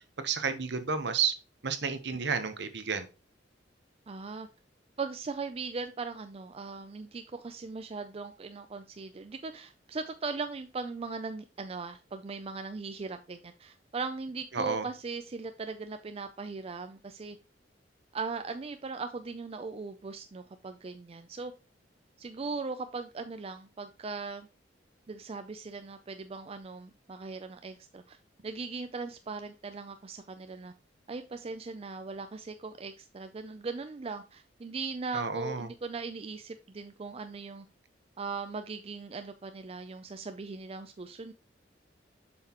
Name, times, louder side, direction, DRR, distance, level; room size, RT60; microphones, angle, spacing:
voice 1, 0.2-1.3 1.6-3.1 14.5-14.9 35.1-35.7, right 6 dB, 65° right, 0.9 m, -31 dB
voice 2, 4.1-4.5 5.0-17.4 18.1-21.5 22.2-24.5 25.1-28.2 28.4-30.7 31.1-37.7 38.2-41.3, right 4 dB, 35° right, 0.4 m, -39 dB
7.5 x 5.9 x 3.0 m
head